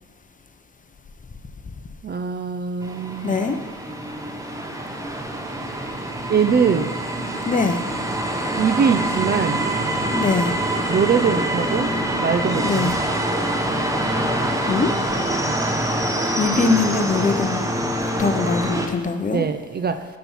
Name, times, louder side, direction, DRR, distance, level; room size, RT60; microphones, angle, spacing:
voice 1, 2.0-3.4 6.3-6.9 8.6-9.7 10.9-11.9 12.2-13.0 19.3-20.2, right 6 dB, 35° right, 9 dB, 0.5 m, -22 dB
sound 1, 2.8-18.9, right 1 dB, 10° right, 0.9 m, -25 dB
voice 2, 3.2-3.6 7.4-7.8 10.1-10.5 12.6-12.9 14.7-14.9 16.4-17.7 18.2-19.4, left 4 dB, 25° left, 8 dB, 0.8 m, -22 dB
11.5 x 4.4 x 5.6 m, 1.4 s
cardioid pair, 90°, 30 cm